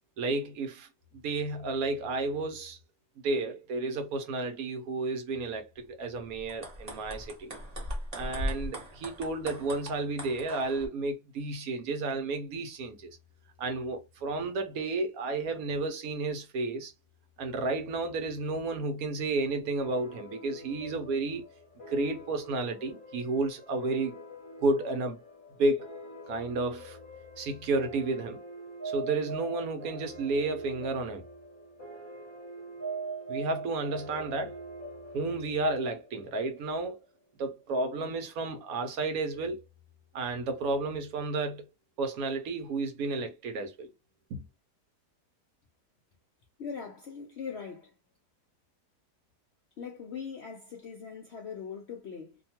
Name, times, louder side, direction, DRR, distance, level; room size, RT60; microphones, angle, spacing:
voice 1, 0.2-0.9 1.2-2.8 3.2-7.5 8.1-13.1 13.6-16.9 17.4-21.4 21.9-24.1 24.6-25.2 25.6-25.9 26.3-27.0 27.4-28.4 28.8-31.2 33.3-34.6 35.1-37.0 37.4-39.6 40.1-41.6 42.0-43.9 44.3-44.4, right 3 dB, 70° right, 1.0 m, -32 dB
sound 1, 6.4-10.9, equal, 30° right, 0.9 m, -38 dB
sound 2, 19.8-36.9, right 3 dB, 35° left, 1.0 m, -44 dB
voice 2, 46.6-47.9 49.8-52.4, left 6 dB, 70° left, 0.6 m, -41 dB
2.7 x 2.2 x 2.8 m
omnidirectional pair, 1.8 m